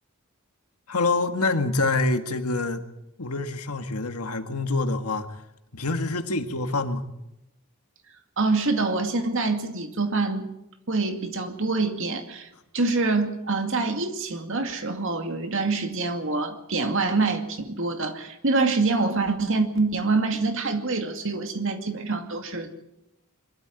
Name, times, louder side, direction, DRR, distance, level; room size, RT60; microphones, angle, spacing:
voice 1, 0.9-2.8 3.2-5.3 5.7-7.0, left 3 dB, 90° left, 7 dB, 1.8 m, -26 dB
voice 2, 8.4-10.5 10.9-12.5 12.7-22.7, right 3 dB, 60° right, 6 dB, 2.4 m, -25 dB
23.0 x 13.0 x 9.0 m, 0.89 s
head